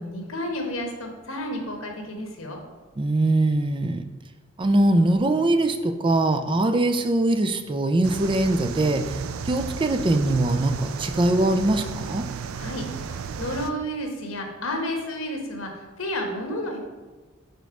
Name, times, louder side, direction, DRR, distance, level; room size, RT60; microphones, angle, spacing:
voice 1, 0.0-2.6 12.6-15.7 16.0-16.8, left 1 dB, 70° left, 2 dB, 1.2 m, -31 dB
voice 2, 3.0-4.1 4.6-9.2 9.5-12.3, right 2 dB, 25° right, 8 dB, 0.4 m, -22 dB
sound 1, 8.0-13.7, right 6 dB, 85° right, 0.4 m, -34 dB
5.2 x 4.5 x 5.0 m, 1.3 s
head